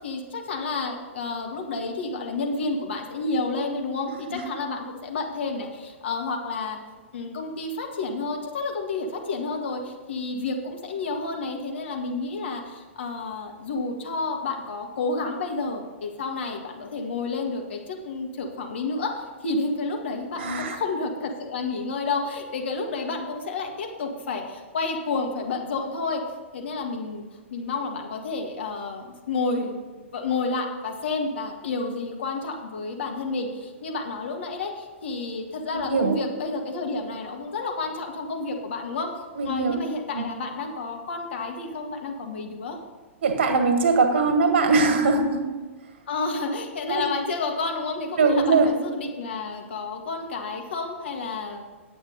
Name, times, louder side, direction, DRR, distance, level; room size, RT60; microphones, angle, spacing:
voice 1, 0.0-6.8 7.1-26.2 26.5-27.3 27.5-39.1 39.5-42.8 46.1-51.6, left 3 dB, 60° left, 2 dB, 1.7 m, -30 dB
voice 2, 20.4-20.8 35.7-36.2 39.3-39.8 40.1-40.2 43.2-45.4 46.9-47.1 48.2-48.7, right 4 dB, 55° right, 5 dB, 1.7 m, -21 dB
9.5 x 7.8 x 5.4 m, 1.4 s
figure-of-eight pair, 110°, 7 cm